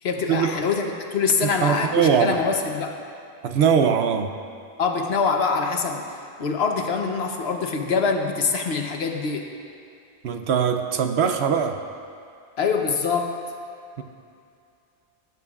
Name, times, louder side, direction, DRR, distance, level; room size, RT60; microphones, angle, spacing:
voice 1, 0.0-3.0 4.8-9.5 12.6-13.4, left 5 dB, 70° left, 3 dB, 1.1 m, -24 dB
voice 2, 1.4-2.4 3.4-4.3 10.2-11.8 14.0-14.1, right 7 dB, 70° right, 6 dB, 0.9 m, -21 dB
17.5 x 9.4 x 2.4 m, 2.5 s
omnidirectional pair, 1.1 m